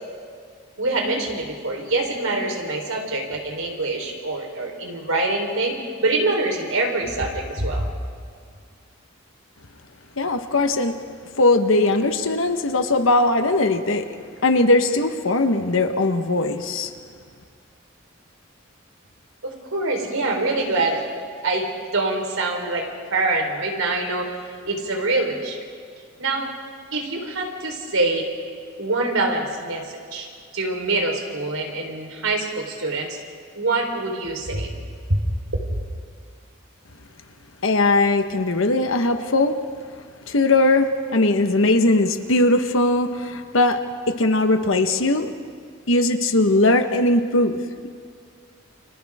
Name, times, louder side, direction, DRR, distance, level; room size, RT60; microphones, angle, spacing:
voice 1, 0.8-5.7 6.0-7.9 19.4-21.1 21.4-24.3 24.7-25.6 26.2-26.5 26.9-28.3 28.8-30.3 30.5-33.2 33.5-34.7 35.1-35.2 35.5-35.6, right 2 dB, 90° right, 1 dB, 4.2 m, -25 dB
voice 2, 10.2-10.9 11.4-14.1 14.4-16.9 37.6-39.5 40.3-43.8 44.1-45.3 45.9-47.9, left 2 dB, 70° left, 7 dB, 1.3 m, -19 dB
30.0 x 27.5 x 3.7 m, 2.1 s
head